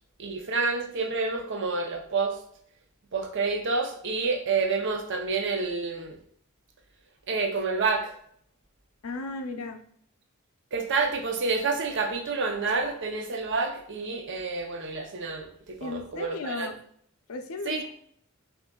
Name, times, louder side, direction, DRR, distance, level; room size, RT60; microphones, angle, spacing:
voice 1, 0.2-2.4 3.1-6.2 7.3-8.1 10.7-16.7 17.7-17.8, right 4 dB, 60° right, 4 dB, 0.6 m, -28 dB
voice 2, 9.0-9.8 15.8-16.8 17.3-17.9, left 3 dB, 75° left, 6 dB, 0.5 m, -35 dB
6.0 x 2.5 x 2.3 m, 0.64 s
head